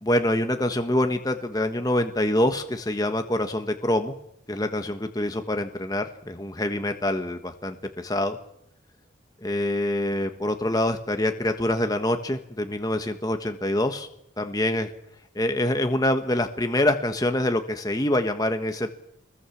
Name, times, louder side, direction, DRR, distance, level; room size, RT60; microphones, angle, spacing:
voice 1, 0.0-4.1 4.5-8.4 9.4-14.1 14.4-14.9 15.3-18.9, left 1 dB, 20° left, 6 dB, 1.3 m, -25 dB
26.5 x 20.5 x 7.2 m, 0.77 s
head